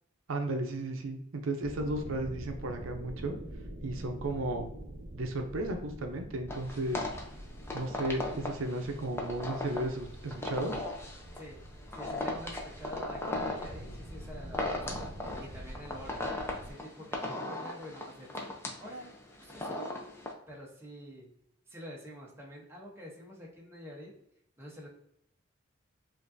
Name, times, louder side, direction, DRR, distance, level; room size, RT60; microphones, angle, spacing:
voice 1, 0.3-3.4 3.8-4.7 5.1-7.0 7.7-10.8, right 1 dB, 80° right, 5 dB, 0.6 m, -34 dB
sound 1, 1.6-16.7, right 1 dB, 40° right, 1.3 m, -46 dB
sound 2, 6.5-20.3, left 2 dB, 10° left, 0.5 m, -37 dB
voice 2, 11.9-15.1 15.4-16.2 16.5-18.4 18.8-19.1 19.4-20.1 20.5-21.3 21.7-24.1 24.6-24.9, equal, 10° right, -3 dB, 0.8 m, -47 dB
5.1 x 2.5 x 2.6 m, 0.76 s
head